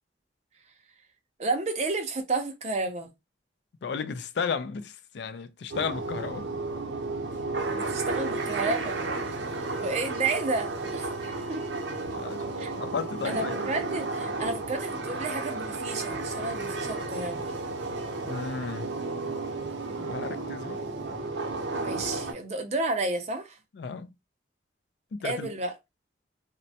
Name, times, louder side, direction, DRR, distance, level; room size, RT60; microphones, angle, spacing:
voice 1, 1.4-3.1 7.7-11.2 11.5-11.6 12.6-12.7 13.2-17.5 21.8-23.6 25.2-25.8, right 3 dB, 35° right, 0.5 m, -31 dB
voice 2, 3.8-6.5 11.9-13.6 18.3-18.9 20.0-20.8 23.8-24.1 25.1-25.5, left 5 dB, 65° left, 0.4 m, -34 dB
sound 1, 5.7-22.3, right 3 dB, 80° right, 0.6 m, -33 dB
3.1 x 2.1 x 2.7 m
head